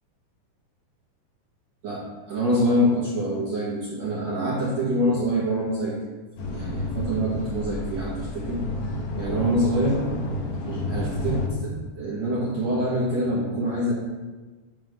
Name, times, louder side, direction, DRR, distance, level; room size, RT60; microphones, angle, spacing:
voice 1, 2.3-6.0 6.4-8.6 9.2-10.1 10.7-13.9, equal, 65° right, -6 dB, 1.8 m, -25 dB
sound 1, 6.4-11.5, left 1 dB, 70° left, 2.6 m, -30 dB
9.0 x 3.1 x 6.4 m, 1.3 s
omnidirectional pair, 4.7 m